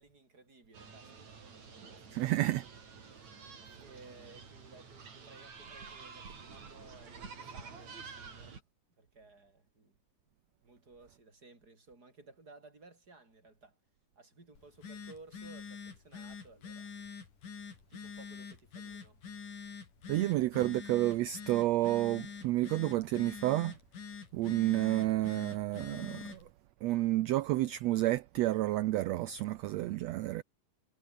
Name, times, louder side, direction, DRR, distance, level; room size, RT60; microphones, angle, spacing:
voice 1, 0.0-2.4 3.8-8.6 9.0-10.0 10.6-13.8 14.2-16.9 17.9-19.2, right 3 dB, 25° right, 6.0 m, -57 dB
sound 1, 0.7-8.6, right 5 dB, 55° right, 5.3 m, -50 dB
voice 2, 2.1-2.6 20.1-23.8 24.3-26.4 26.8-30.4, right 16 dB, 80° right, 1.5 m, -30 dB
Telephone, 14.5-26.5, left 5 dB, 70° left, 5.8 m, -46 dB
omnidirectional pair, 3.8 m